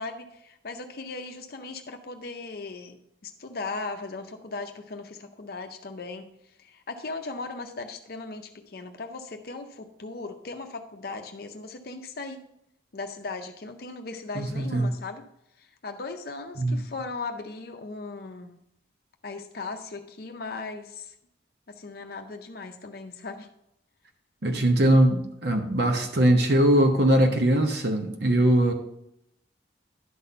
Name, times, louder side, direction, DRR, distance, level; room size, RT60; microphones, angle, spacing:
voice 1, 0.0-12.4 12.9-15.2 15.6-18.6 19.2-21.1 21.7-23.5, left 3 dB, 55° left, 6 dB, 0.6 m, -38 dB
voice 2, 14.3-14.9 16.6-16.8 24.4-28.7, right 1 dB, 60° right, 4 dB, 0.9 m, -21 dB
11.0 x 4.2 x 5.5 m, 0.80 s
head